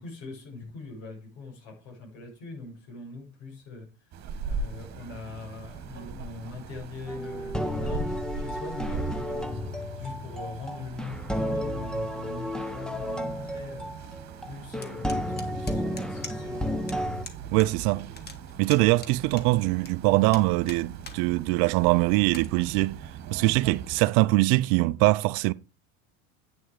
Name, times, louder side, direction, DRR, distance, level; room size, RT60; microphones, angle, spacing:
voice 1, 0.0-4.1 4.4-14.2 14.4-16.7, left 4 dB, 65° left, 6.6 m, -42 dB
sound 1, 4.1-24.0, right 5 dB, 40° right, 2.0 m, -40 dB
sound 2, 7.1-17.2, left 1 dB, ahead, 0.9 m, -32 dB
sound 3, 14.8-16.6 16.9-17.0 17.2-17.7 17.9-19.9 20.3-21.2 21.6-21.7 22.2-22.5, left 4 dB, 25° left, 1.8 m, -43 dB
voice 2, 17.5-18.1 18.6-23.0 23.3-25.5, right 21 dB, 60° right, 0.6 m, -23 dB
9.1 x 6.4 x 4.8 m
supercardioid pair, 100°, 40 cm